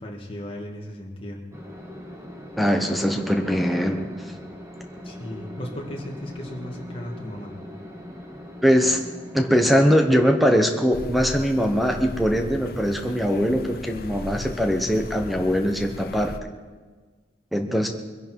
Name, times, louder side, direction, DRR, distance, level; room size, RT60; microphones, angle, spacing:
voice 1, 0.0-1.4 5.0-7.5, left 1 dB, 30° left, -1 dB, 2.3 m, -36 dB
sound 1, 1.5-12.6, left 1 dB, 15° right, 1.9 m, -41 dB
voice 2, 2.6-4.1 8.6-9.0 9.3-16.3 17.5-17.9, equal, ahead, 4 dB, 1.0 m, -21 dB
sound 2, 10.9-16.4, left 2 dB, 55° left, 0.7 m, -37 dB
22.5 x 11.0 x 4.7 m, 1.4 s
head